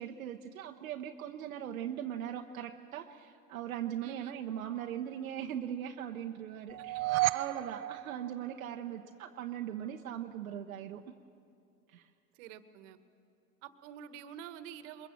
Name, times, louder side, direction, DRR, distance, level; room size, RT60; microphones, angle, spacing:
voice 1, 0.0-11.0 11.9-12.1, right 10 dB, 80° right, 3 dB, 0.9 m, -40 dB
voice 2, 4.0-4.3 12.3-13.0 13.6-15.1, right 9 dB, 60° right, 12 dB, 1.4 m, -48 dB
sound 1, 6.7-9.0, right 17 dB, 40° right, 0.5 m, -33 dB
22.0 x 22.0 x 7.6 m, 2.5 s
hypercardioid pair, 85°, 41 cm